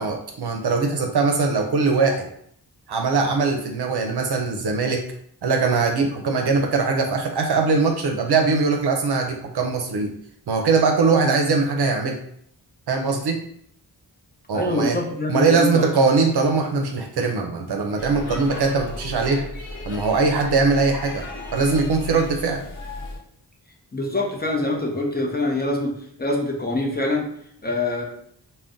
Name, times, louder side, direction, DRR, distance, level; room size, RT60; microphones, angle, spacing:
voice 1, 0.0-2.3 2.9-5.0 5.4-10.1 10.5-12.2 12.9-13.4 14.5-15.0 15.3-19.5 19.9-21.3 21.5-22.6, right 4 dB, 70° right, 2 dB, 0.5 m, -21 dB
voice 2, 14.5-15.9 18.3-18.4 23.9-25.9 26.2-27.3 27.6-28.0, left 2 dB, 25° left, 0 dB, 0.7 m, -24 dB
Speech / Shout / Subway metro underground, 17.9-23.2, left 2 dB, 50° left, 0.9 m, -35 dB
2.4 x 2.1 x 3.6 m, 0.67 s
cardioid pair, 55°, 41 cm